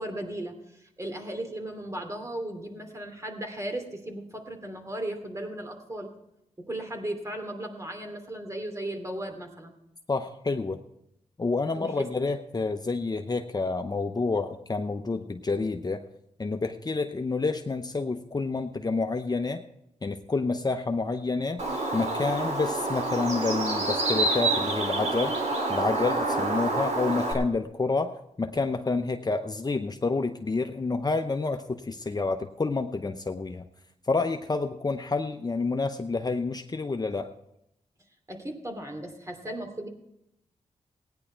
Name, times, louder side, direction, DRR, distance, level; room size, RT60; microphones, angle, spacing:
voice 1, 0.0-6.1 6.6-9.7 11.7-12.1 38.3-39.9, right 1 dB, 25° right, 4 dB, 2.8 m, -36 dB
voice 2, 10.1-10.8 11.4-16.0 16.4-19.6 20.0-21.6 21.9-25.4 25.7-33.6 34.1-37.3, left 3 dB, 30° left, 6 dB, 0.8 m, -29 dB
Bird, 21.6-27.3, right 2 dB, 65° right, 3.0 m, -28 dB
16.5 x 9.9 x 4.6 m, 0.80 s
cardioid pair, 65°, 13 cm